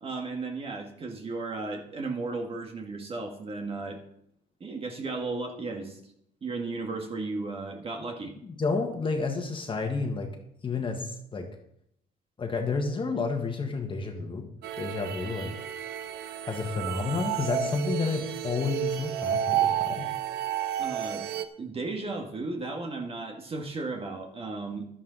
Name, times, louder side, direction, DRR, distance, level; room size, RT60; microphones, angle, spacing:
voice 1, 0.0-4.0 4.6-6.0 6.4-8.3 20.8-21.3 21.6-24.9, right 3 dB, 35° right, 3 dB, 1.7 m, -35 dB
voice 2, 8.4-10.3 10.6-11.5 12.4-14.5 14.8-15.5 16.5-20.1, left 4 dB, 30° left, 4 dB, 1.6 m, -30 dB
sound 1, 14.6-21.4, right 10 dB, 75° right, 0.9 m, -31 dB
11.5 x 11.0 x 4.0 m, 0.73 s
cardioid pair, 110°, 17 cm